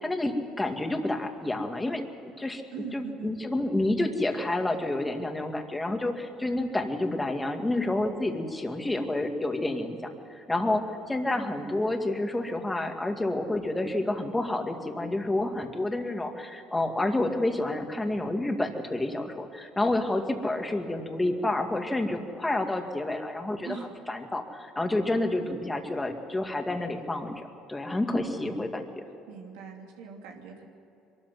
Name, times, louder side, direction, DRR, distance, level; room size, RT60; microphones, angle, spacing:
voice 1, 0.0-2.0 2.4-2.6 2.9-23.8 24.1-29.0, left 2 dB, 10° left, 4 dB, 2.2 m, -29 dB
voice 2, 2.7-3.3 23.6-23.9 25.4-25.6 28.1-28.7 29.3-30.6, right 6 dB, 90° right, 1 dB, 3.0 m, -42 dB
23.0 x 14.0 x 9.4 m, 2.8 s
cardioid pair, 100°, 0 cm